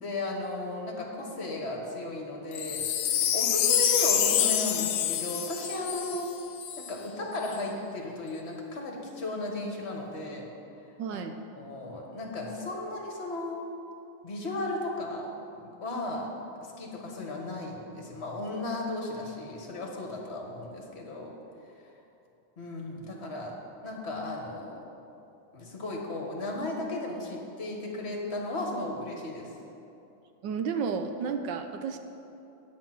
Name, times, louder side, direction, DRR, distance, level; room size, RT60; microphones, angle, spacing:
voice 1, 0.0-2.9 3.1-6.3 6.8-10.4 11.1-11.2 11.6-13.6 14.2-15.3 15.5-16.3 16.6-21.3 22.6-23.5 23.8-24.8 25.5-29.5, left 2 dB, 35° left, 0 dB, 1.6 m, -35 dB
Wind chime, 2.5-6.9 7.5-7.6, left 9 dB, 85° left, 1.5 m, -27 dB
voice 2, 11.0-11.3 30.4-32.0, right 6 dB, 70° right, 7 dB, 1.3 m, -32 dB
8.9 x 8.7 x 6.0 m, 2.8 s
omnidirectional pair, 2.1 m